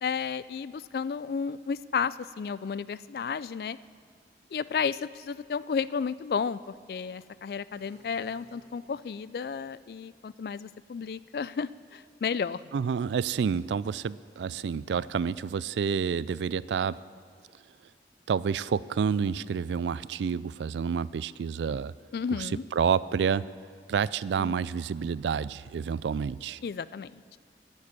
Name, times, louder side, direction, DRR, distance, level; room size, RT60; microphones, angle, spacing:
voice 1, 0.0-3.8 4.5-12.6 22.1-22.6 24.4-24.6 26.6-27.4, left 6 dB, 60° left, 17 dB, 0.3 m, -32 dB
sound 1, 7.8-9.3, right 1 dB, 55° right, 3.8 m, -58 dB
voice 2, 12.7-17.0 18.3-21.9 22.4-23.5 23.9-26.6, right 6 dB, 85° right, 19 dB, 0.3 m, -29 dB
10.5 x 7.6 x 9.5 m, 2.2 s
head